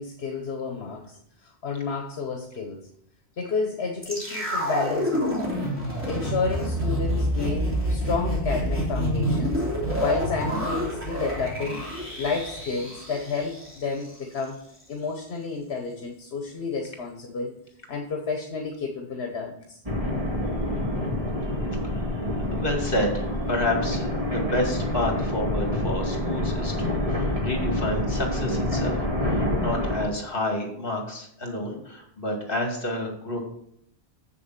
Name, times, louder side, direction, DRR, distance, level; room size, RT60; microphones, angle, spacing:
voice 1, 0.0-2.9 3.4-5.5 6.1-9.6 10.0-11.8 12.2-14.6 14.9-17.5 17.9-19.8, left 4 dB, 75° left, 2 dB, 1.3 m, -31 dB
sound 1, 4.0-14.2 14.4-14.5, equal, 10° right, 3.1 m, -28 dB
sound 2, 19.9-30.0, left 1 dB, 35° right, 2.3 m, -27 dB
voice 2, 22.5-33.4, left 1 dB, 55° left, 1 dB, 2.4 m, -30 dB
7.5 x 7.1 x 5.9 m, 0.70 s
omnidirectional pair, 1.1 m